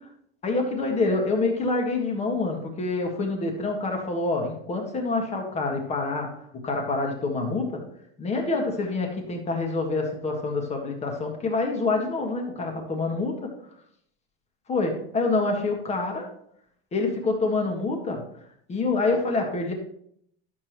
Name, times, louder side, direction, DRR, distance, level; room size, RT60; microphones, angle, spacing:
voice 1, 0.4-6.3 6.6-7.8 8.2-13.5 14.7-16.3 16.9-18.2 18.7-19.7, left 3 dB, 20° left, 2 dB, 1.7 m, -26 dB
12.0 x 7.0 x 3.1 m, 0.69 s
cardioid pair, 165°, 29 cm